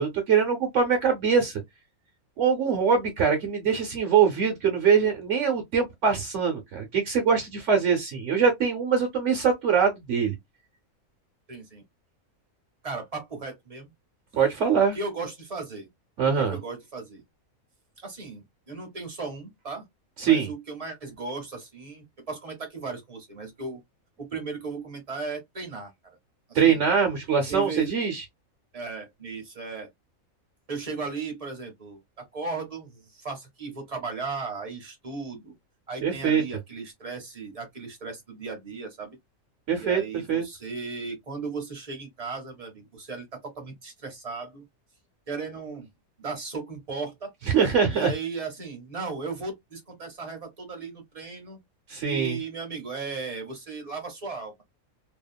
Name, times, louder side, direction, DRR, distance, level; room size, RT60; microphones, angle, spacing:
voice 1, 0.0-1.6 2.4-10.3 14.3-15.0 16.2-16.6 20.2-20.5 26.5-28.2 36.0-36.4 39.7-40.0 40.3-40.4 47.5-48.1 51.9-52.4, right 6 dB, 65° right, 1.0 m, -23 dB
voice 2, 11.5-11.8 12.8-13.9 14.9-15.9 16.4-17.2 18.0-19.8 20.2-23.8 24.2-25.9 26.5-26.8 27.5-27.9 28.7-29.9 30.7-35.5 35.9-39.2 39.8-44.7 45.3-45.9 46.2-47.3 47.9-51.6 52.0-54.6, right 4 dB, 35° right, 0.7 m, -36 dB
2.8 x 2.4 x 2.2 m
omnidirectional pair, 1.5 m